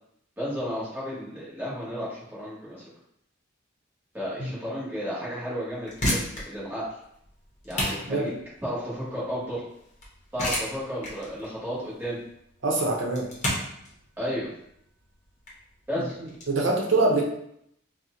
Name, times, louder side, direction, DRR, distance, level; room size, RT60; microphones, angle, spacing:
voice 1, 0.4-2.8 4.1-6.8 7.6-8.3 8.6-9.6 10.3-12.2 14.2-14.5 15.9-16.2, equal, 10° right, -9 dB, 1.3 m, -33 dB
sound 1, 5.7-16.5, left 1 dB, 40° left, 0.8 m, -33 dB
voice 2, 12.6-13.3 16.0-16.1 16.5-17.2, right 2 dB, 65° right, -1 dB, 0.7 m, -24 dB
2.9 x 2.1 x 3.7 m, 0.73 s
head